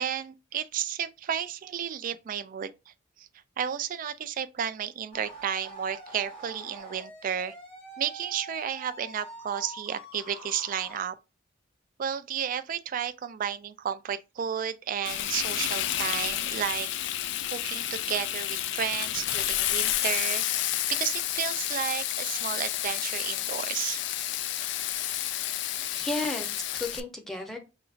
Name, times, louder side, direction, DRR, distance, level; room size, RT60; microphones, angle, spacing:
voice 1, 0.0-2.9 3.2-3.3 3.6-7.5 8.0-11.1 12.0-20.5 20.9-24.0, right 8 dB, 45° right, 0.3 m, -32 dB
sound 1, 5.1-11.0, right 1 dB, 30° left, 1.5 m, -45 dB
Frying (food), 15.1-27.0, left 12 dB, 65° left, 0.3 m, -30 dB
voice 2, 25.6-27.6, left 2 dB, ahead, 0.8 m, -34 dB
5.0 x 2.9 x 2.5 m
head